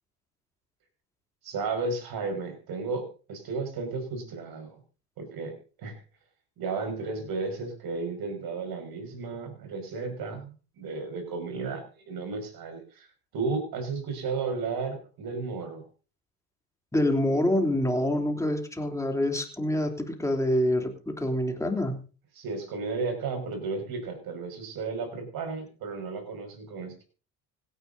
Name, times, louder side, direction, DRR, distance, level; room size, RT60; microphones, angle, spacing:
voice 1, 1.4-4.8 5.2-6.0 6.6-13.1 13.3-15.8 22.3-27.0, right 4 dB, 50° right, 6 dB, 5.7 m, -33 dB
voice 2, 16.9-22.1, left 1 dB, 5° left, 3 dB, 3.1 m, -26 dB
25.5 x 10.0 x 2.7 m, 0.36 s
figure-of-eight pair, 60°, 48 cm